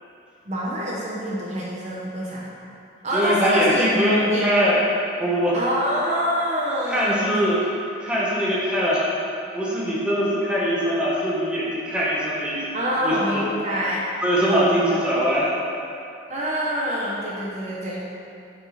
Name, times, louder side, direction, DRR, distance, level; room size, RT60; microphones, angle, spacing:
voice 1, 0.5-2.5 3.0-3.8 4.1-4.5 5.5-7.5 12.7-14.0 14.5-15.0 16.3-18.2, equal, 40° right, -5 dB, 1.0 m, -26 dB
voice 2, 3.1-4.9 5.2-5.6 6.9-7.6 8.0-9.1 9.5-12.6 13.0-13.4 13.7-13.8 14.2-15.5, equal, 5° right, -7 dB, 1.3 m, -22 dB
8.3 x 4.7 x 5.0 m, 2.6 s
head